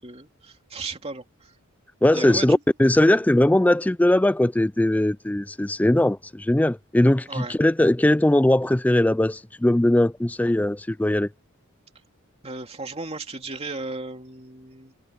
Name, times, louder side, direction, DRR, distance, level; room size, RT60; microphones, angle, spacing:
voice 1, 0.0-1.5 2.1-2.6 7.3-7.6 12.4-14.9, right 3 dB, 25° right, 2.8 m, -35 dB
voice 2, 2.0-11.3, left 1 dB, 5° left, 0.3 m, -20 dB
head